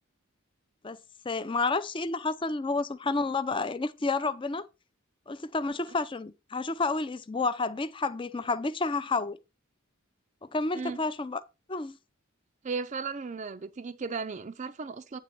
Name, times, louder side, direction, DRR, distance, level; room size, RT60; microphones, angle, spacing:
voice 1, 1.2-4.6 5.3-9.4 10.5-11.4 11.7-12.0, left 3 dB, 25° left, 0.5 m, -30 dB
voice 2, 12.6-15.2, right 4 dB, 35° right, 0.4 m, -35 dB
8.9 x 3.9 x 5.9 m
head